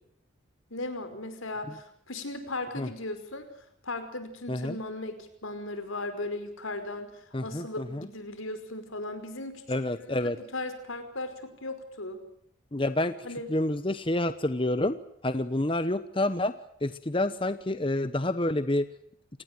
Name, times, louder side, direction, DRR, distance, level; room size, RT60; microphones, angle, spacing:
voice 1, 0.7-3.4 3.8-9.6 9.9-12.2 13.2-13.5, left 2 dB, 85° left, 9 dB, 5.3 m, -37 dB
voice 2, 7.3-8.1 9.7-10.4 12.7-13.1 13.5-15.0 15.2-16.5 16.8-18.9, left 1 dB, 25° left, 12 dB, 1.0 m, -28 dB
29.0 x 19.0 x 7.8 m, 0.70 s
head